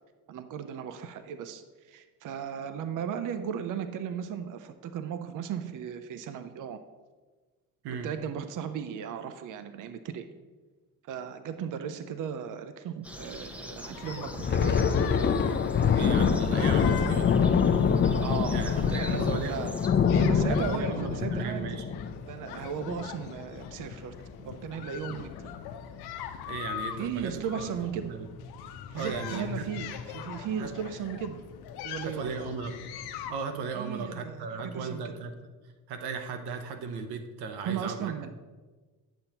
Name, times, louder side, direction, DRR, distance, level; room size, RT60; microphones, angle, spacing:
voice 1, 0.3-6.9 8.0-10.3 11.0-14.8 18.2-19.8 20.1-21.8 22.3-25.5 27.0-28.1 28.9-31.4 31.8-32.5 33.7-35.2 37.6-38.3, right 8 dB, 55° right, 10 dB, 0.6 m, -36 dB
sound 1, 13.0-19.9, left 1 dB, 5° right, 0.7 m, -44 dB
sound 2, 13.9-33.3, left 9 dB, 85° left, 0.7 m, -42 dB
Thunder, 14.3-23.3 23.7-23.9 24.3-24.5 25.1-25.6, left 6 dB, 30° left, 0.5 m, -25 dB
voice 2, 15.9-17.4 18.5-19.6 20.5-21.8 26.4-27.7 28.1-28.3 28.9-29.6 30.6-30.7 32.0-32.8 33.3-35.3 35.9-38.3, right 5 dB, 90° right, 7 dB, 0.9 m, -36 dB
9.3 x 7.0 x 2.9 m, 1.3 s
cardioid pair, 90°, 38 cm